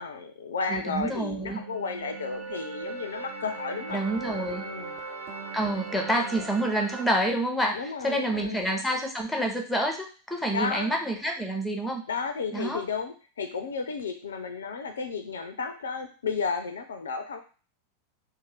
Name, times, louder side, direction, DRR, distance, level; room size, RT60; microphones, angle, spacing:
voice 1, 0.0-4.0 4.6-5.0 7.7-8.6 10.5-10.9 12.1-17.4, left 5 dB, 65° left, 6 dB, 0.4 m, -33 dB
voice 2, 0.7-1.6 3.9-4.7 5.5-12.0 12.5-12.8, right 1 dB, 5° left, 2 dB, 0.6 m, -28 dB
sound 1, 1.5-7.0, right 4 dB, 45° right, 0.6 m, -38 dB
2.6 x 2.1 x 3.4 m, 0.37 s
figure-of-eight pair, 90°, 0 cm